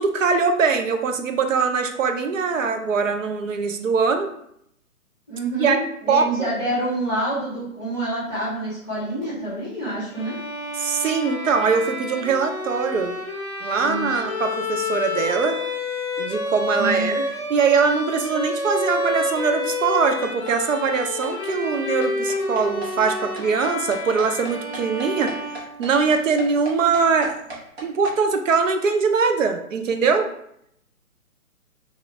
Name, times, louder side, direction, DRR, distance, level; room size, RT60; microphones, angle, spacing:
voice 1, 0.0-4.3 5.6-5.8 6.1-6.3 10.7-13.2 13.6-15.6 16.2-17.2 17.5-25.3 25.8-27.4 27.8-30.3, right 5 dB, 60° right, 6 dB, 0.5 m, -22 dB
voice 2, 5.3-10.4 13.8-14.2 16.7-17.1, right 1 dB, 10° right, -12 dB, 1.0 m, -27 dB
Bowed string instrument, 10.1-26.1, left 2 dB, 15° left, 0.7 m, -29 dB
sound 1, 20.2-28.2, right 2 dB, 45° right, 0.9 m, -37 dB
2.9 x 2.4 x 3.1 m, 0.73 s
hypercardioid pair, 170°, 44 cm